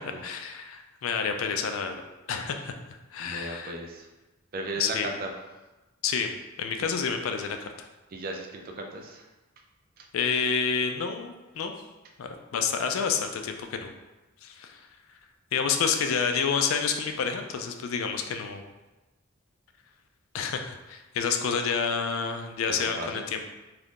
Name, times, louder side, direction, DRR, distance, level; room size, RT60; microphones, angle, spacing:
voice 1, 0.0-2.0 2.3-2.8 3.1-3.7 4.8-5.1 6.0-7.9 10.1-11.7 12.2-13.9 14.4-14.8 15.5-18.6 20.3-23.5, left 6 dB, 75° left, 6 dB, 0.4 m, -29 dB
voice 2, 3.2-4.1 4.5-5.3 6.8-6.9 8.1-9.2 10.0-10.1 22.7-23.3, right 2 dB, 45° right, 2 dB, 0.4 m, -36 dB
2.7 x 2.4 x 3.5 m, 1.1 s
head